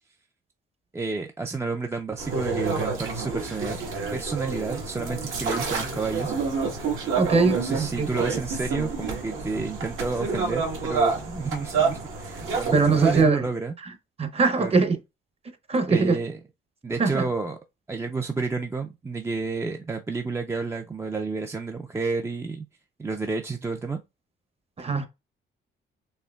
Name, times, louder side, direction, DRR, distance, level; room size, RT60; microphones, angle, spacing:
voice 1, 0.9-3.8 4.1-6.3 7.5-13.7 14.6-14.7 15.9-16.4 16.8-17.6 17.9-22.7 23.0-24.0, right 4 dB, 15° right, 0.3 m, -30 dB
sound 1, 2.2-13.2, right 4 dB, 80° right, 1.4 m, -28 dB
voice 2, 7.2-8.1 12.7-13.5 14.2-15.0 15.7-16.2 17.0-17.2 24.8-25.1, right 4 dB, 30° right, 0.7 m, -21 dB
4.3 x 2.9 x 2.3 m
cardioid pair, 90°, 20 cm